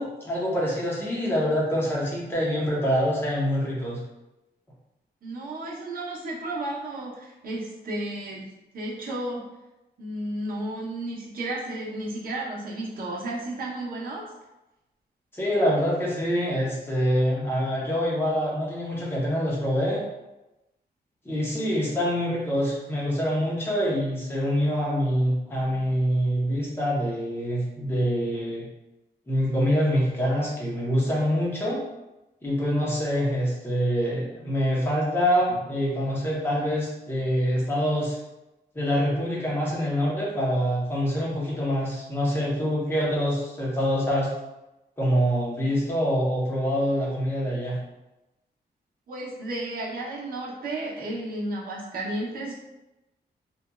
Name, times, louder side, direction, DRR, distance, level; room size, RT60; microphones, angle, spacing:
voice 1, 0.0-4.0 15.3-20.0 21.2-28.6 29.3-31.8 32.4-38.2 38.7-44.3 45.0-47.8, equal, 15° left, -5 dB, 0.7 m, -25 dB
voice 2, 5.2-9.4 10.0-14.2 49.1-52.5, right 1 dB, 55° right, -5 dB, 0.7 m, -33 dB
2.9 x 2.4 x 2.2 m, 0.98 s
wide cardioid pair, 145°, 18 cm